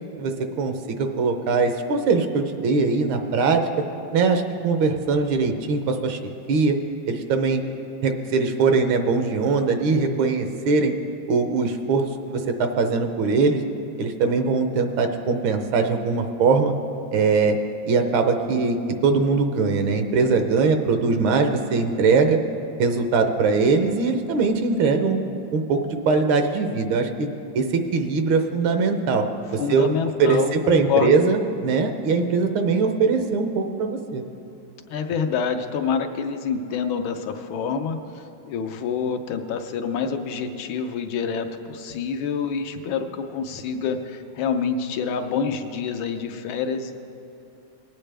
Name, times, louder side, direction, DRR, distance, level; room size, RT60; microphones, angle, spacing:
voice 1, 0.2-3.6 4.1-6.2 6.5-6.8 7.1-7.6 8.0-10.9 11.3-13.6 14.0-16.7 17.1-17.6 17.9-18.8 19.0-22.4 22.8-25.2 25.5-27.3 27.5-29.3 29.5-29.9 30.2-34.2, right 4 dB, 80° right, 6 dB, 1.5 m, -21 dB
voice 2, 29.6-31.2 34.9-38.0 38.5-46.9, left 6 dB, 85° left, 6 dB, 1.5 m, -27 dB
19.5 x 8.8 x 3.4 m, 2.8 s
omnidirectional pair, 2.2 m